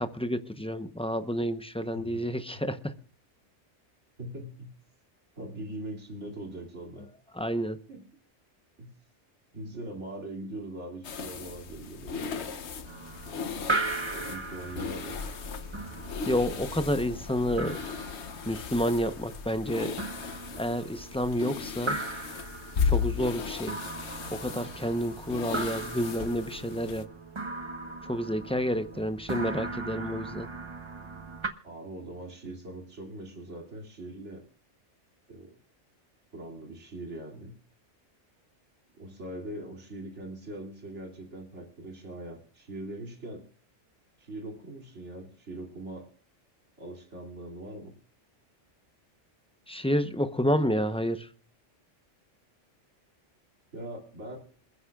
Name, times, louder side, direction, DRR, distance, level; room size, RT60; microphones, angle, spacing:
voice 1, 0.0-2.9 7.3-7.8 16.3-17.8 18.5-20.0 20.6-22.0 22.8-23.8 24.3-27.1 28.0-30.5 49.7-51.3, equal, 5° left, 0.6 m, -29 dB
voice 2, 4.2-4.7 5.4-7.1 7.9-8.0 8.8-8.9 9.5-12.5 14.1-15.2 28.9-29.1 31.6-34.4 35.3-35.5 36.3-37.5 39.0-43.4 44.2-46.1 46.8-48.0 53.7-54.4, right 1 dB, 70° right, 3.0 m, -41 dB
sound 1, 11.0-27.0, left 6 dB, 70° left, 1.2 m, -36 dB
sound 2, 12.8-31.5, right 3 dB, 25° right, 1.2 m, -38 dB
27.5 x 9.9 x 2.3 m
omnidirectional pair, 1.2 m